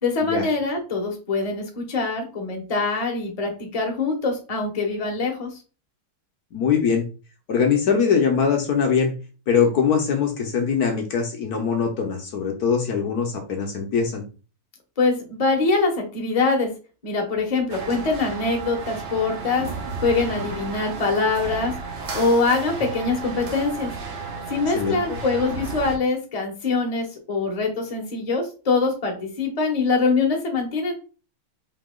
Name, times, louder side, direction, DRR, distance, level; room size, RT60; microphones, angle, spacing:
voice 1, 0.0-5.6 15.0-16.7 17.0-19.7 20.0-21.7 22.1-23.9 24.5-30.9, left 3 dB, 30° left, 2 dB, 0.7 m, -23 dB
voice 2, 6.5-7.0 7.5-9.2 9.5-14.2 24.7-25.2, left 6 dB, 65° left, 3 dB, 1.0 m, -22 dB
sound 1, 17.7-26.0, right 4 dB, 55° right, 0.7 m, -33 dB
4.8 x 2.9 x 3.6 m, 0.35 s
omnidirectional pair, 2.3 m